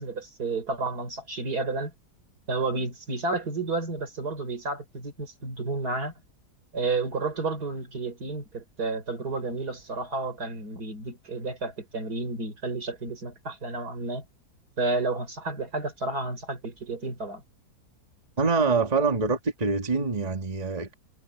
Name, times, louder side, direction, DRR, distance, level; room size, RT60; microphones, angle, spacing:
voice 1, 0.0-1.9 2.5-6.1 6.7-14.2 14.8-17.4, right 3 dB, 65° right, 5.1 m, -31 dB
voice 2, 18.4-20.9, right 4 dB, 25° right, 1.9 m, -25 dB
omnidirectional pair, 1.8 m